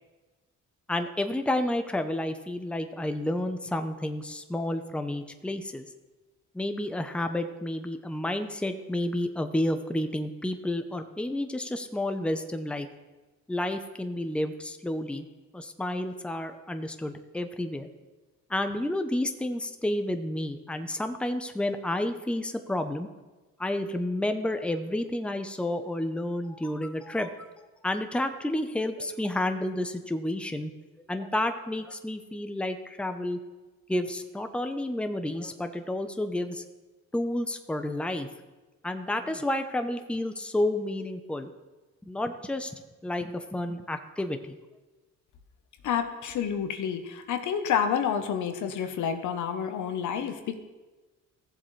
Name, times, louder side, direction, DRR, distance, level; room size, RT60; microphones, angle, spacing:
voice 1, 0.9-5.9 6.5-12.9 13.5-15.3 15.5-17.9 18.5-23.1 23.6-27.5 27.8-30.7 31.1-33.4 33.9-36.6 37.1-38.3 38.8-41.5 42.0-44.6, left 1 dB, 5° left, 7 dB, 0.7 m, -30 dB
voice 2, 45.8-50.6, left 8 dB, 75° left, 7 dB, 1.1 m, -29 dB
16.0 x 7.4 x 3.3 m, 1.2 s
cardioid pair, 90°, 30 cm